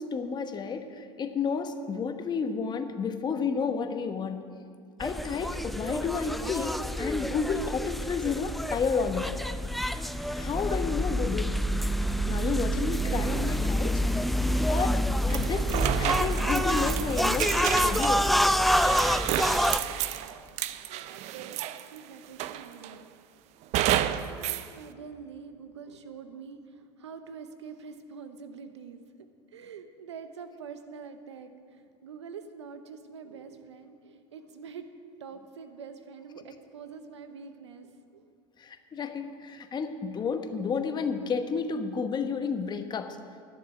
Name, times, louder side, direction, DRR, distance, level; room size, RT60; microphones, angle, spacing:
voice 1, 0.0-4.5 5.0-9.4 10.4-11.6 12.3-14.0 14.7-18.3 38.6-43.2, left 5 dB, 30° left, 8 dB, 1.1 m, -31 dB
sound 1, 5.0-19.8, equal, ahead, 0.4 m, -27 dB
sound 2, 15.3-22.0 22.4-23.0 23.7-24.7, right 12 dB, 50° right, 0.6 m, -31 dB
voice 2, 19.7-23.1 23.6-23.7 24.1-34.9 35.2-38.4, right 6 dB, 90° right, 9 dB, 0.9 m, -46 dB
11.5 x 6.7 x 9.4 m, 2.3 s
hypercardioid pair, 90°, 14 cm